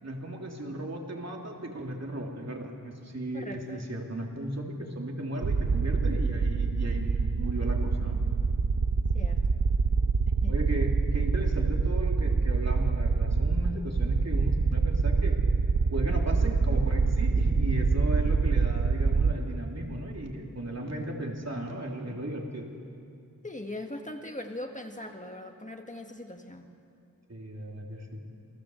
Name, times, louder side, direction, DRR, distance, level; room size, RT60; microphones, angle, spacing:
voice 1, 0.0-8.2 10.5-15.4 15.9-22.7 27.3-28.2, right 1 dB, 50° right, 0 dB, 3.4 m, -36 dB
voice 2, 3.3-3.8 9.1-9.6 10.4-10.5 18.3-18.4 23.4-26.7, left 1 dB, 25° left, 4 dB, 1.7 m, -40 dB
sound 1, 5.4-19.3, right 4 dB, 70° right, 1.0 m, -25 dB
27.5 x 18.0 x 8.1 m, 2.5 s
wide cardioid pair, 75°, 33 cm